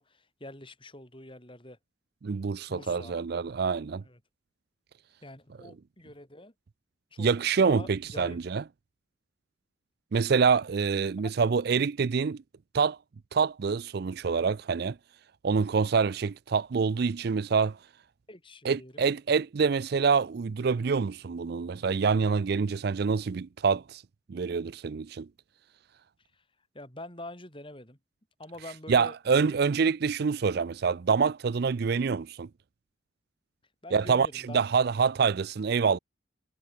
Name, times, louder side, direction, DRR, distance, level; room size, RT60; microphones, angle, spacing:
voice 1, 0.0-1.8 2.7-3.1 4.0-4.2 5.2-6.5 7.1-7.3 7.6-8.4 10.4-10.6 11.2-11.3 18.3-19.0 26.3-26.4 26.7-28.0 28.4-29.6 33.8-34.6, left 1 dB, 25° left, 5.5 m, -45 dB
voice 2, 2.2-4.0 7.2-8.6 10.1-12.4 12.7-13.0 13.3-15.0 15.4-17.8 18.6-24.0 24.3-25.3 28.9-32.5 33.9-34.3 34.5-36.0, right 5 dB, 50° right, 0.4 m, -26 dB
head